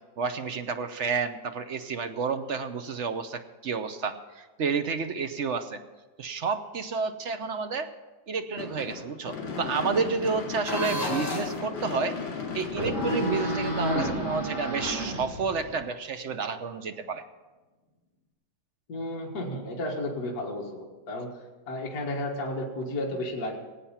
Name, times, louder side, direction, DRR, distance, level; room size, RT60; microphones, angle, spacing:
voice 1, 0.2-5.8 6.2-7.9 8.3-12.2 12.5-17.2, right 5 dB, 55° right, 8 dB, 0.8 m, -30 dB
Gunshot gunfire / Fireworks, 8.6-14.8, left 4 dB, 80° left, 3.0 m, -36 dB
sound 1, 10.6-11.6 12.7-15.8, equal, 25° left, 3.6 m, -31 dB
voice 2, 18.9-21.3 21.7-23.6, left 1 dB, 55° left, -2 dB, 2.2 m, -33 dB
19.5 x 8.6 x 5.7 m, 1.2 s
omnidirectional pair, 2.0 m